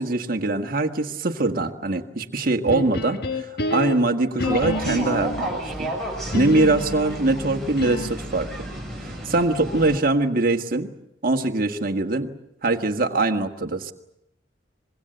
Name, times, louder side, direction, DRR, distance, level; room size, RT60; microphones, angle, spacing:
voice 1, 0.0-5.9 6.3-8.7 9.0-10.9 11.2-12.3 12.6-13.9, right 2 dB, 55° right, 4 dB, 1.6 m, -23 dB
sound 1, 2.7-5.5 6.3-8.3, left 2 dB, 60° left, 1.3 m, -29 dB
sound 2, 4.4-10.0, right 1 dB, ahead, 6.0 m, -32 dB
25.0 x 22.0 x 8.0 m, 0.82 s
head